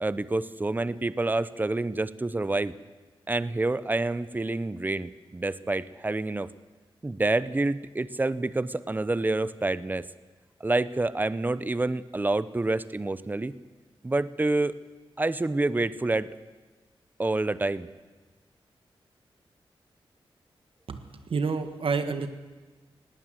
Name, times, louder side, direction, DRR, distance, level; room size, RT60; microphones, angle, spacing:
voice 1, 0.0-2.7 3.3-6.5 7.0-10.0 10.6-13.5 14.0-14.7 15.2-16.3 17.2-17.9, right 2 dB, 20° right, 16 dB, 0.7 m, -27 dB
voice 2, 20.9-22.3, right 5 dB, 70° right, 9 dB, 1.5 m, -29 dB
19.0 x 18.0 x 7.7 m, 1.3 s
wide cardioid pair, 120°, 10 cm